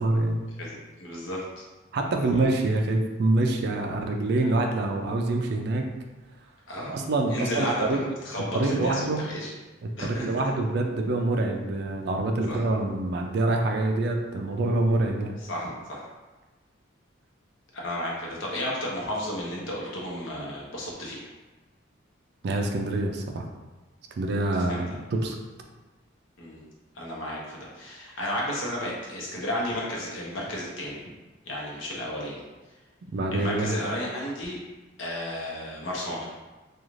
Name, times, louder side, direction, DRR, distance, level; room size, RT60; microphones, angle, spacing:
voice 1, 0.0-0.4 1.9-5.9 6.9-8.1 8.5-9.2 9.8-15.4 22.4-23.5 24.2-25.4 33.1-33.7, right 2 dB, 55° right, 3 dB, 0.3 m, -26 dB
voice 2, 0.6-1.4 2.2-2.4 6.7-7.0 7.3-9.5 10.0-10.3 12.5-12.6 15.4-16.1 17.7-21.3 24.7-24.8 26.4-26.6 26.9-31.0 31.5-32.4 33.3-34.6 35.0-36.3, left 1 dB, 70° left, -4 dB, 0.8 m, -33 dB
2.5 x 2.4 x 3.0 m, 1.2 s
head